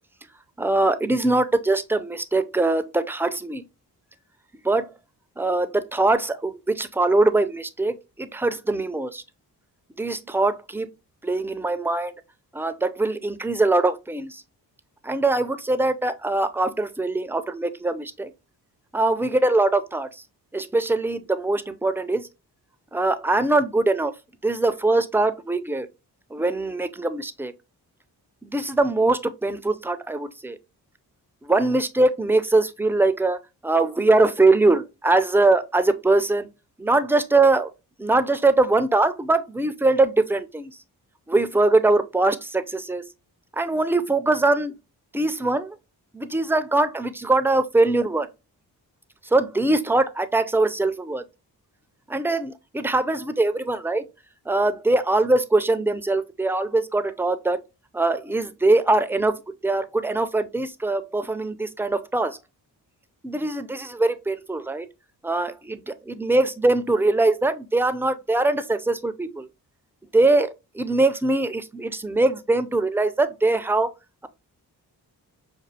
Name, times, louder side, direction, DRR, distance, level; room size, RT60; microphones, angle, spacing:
voice 1, 0.6-3.6 4.6-4.9 5.4-9.2 10.0-10.9 11.2-12.1 12.5-14.4 15.0-18.3 18.9-20.2 20.5-22.3 22.9-24.1 24.4-25.9 26.3-27.5 28.4-30.6 31.4-36.5 36.8-37.7 38.0-40.7 41.3-43.1 43.5-44.7 45.1-45.8 46.1-48.3 49.3-51.2 52.1-54.0 54.5-57.6 57.9-59.3 59.6-62.4 63.2-64.9 65.2-69.5 70.1-73.9, right 2 dB, 5° right, 0.4 m, -22 dB
5.3 x 2.4 x 2.7 m
cardioid pair, 55°, 41 cm